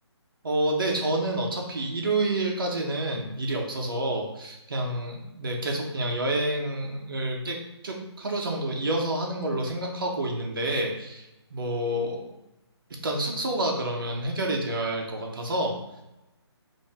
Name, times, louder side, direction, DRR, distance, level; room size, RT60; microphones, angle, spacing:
voice 1, 0.4-7.6 7.8-12.4 13.0-15.8, right 1 dB, 50° right, 0 dB, 1.0 m, -28 dB
5.3 x 2.8 x 3.4 m, 0.93 s
hypercardioid pair, 175°, 14 cm